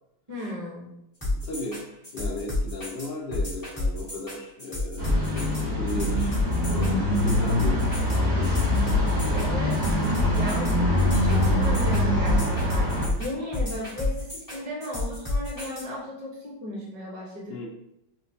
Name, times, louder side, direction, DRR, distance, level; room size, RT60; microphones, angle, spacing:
voice 1, 0.3-0.9 9.3-9.8 10.3-12.9 13.2-17.6, left 1 dB, 75° right, -3 dB, 0.3 m, -35 dB
sound 1, 1.2-15.8, left 2 dB, 15° left, 0.6 m, -30 dB
voice 2, 1.3-1.8 2.1-6.4 6.7-7.8 8.1-8.6 17.5-17.7, left 2 dB, 70° left, -3 dB, 1.2 m, -36 dB
sound 2, 5.0-13.1, left 1 dB, 55° right, 2.2 m, -24 dB
5.1 x 2.2 x 2.7 m, 0.81 s
omnidirectional pair, 2.4 m